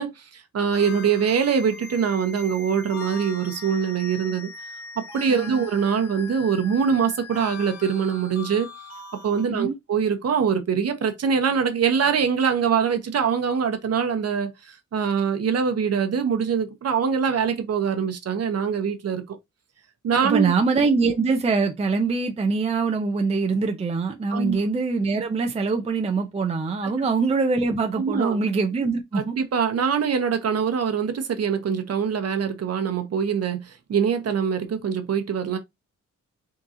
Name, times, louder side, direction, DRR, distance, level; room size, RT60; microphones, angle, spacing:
voice 1, 0.0-4.5 5.0-8.7 9.2-19.4 20.0-20.5 24.3-24.6 28.0-28.4 29.1-35.6, right 7 dB, 55° right, 0.8 m, -23 dB
sound 1, 0.7-9.4, left 4 dB, 55° left, 1.8 m, -40 dB
voice 2, 5.3-5.6 9.5-9.7 20.2-29.4, right 4 dB, 20° right, 0.5 m, -23 dB
3.8 x 2.8 x 3.7 m
wide cardioid pair, 160°, 31 cm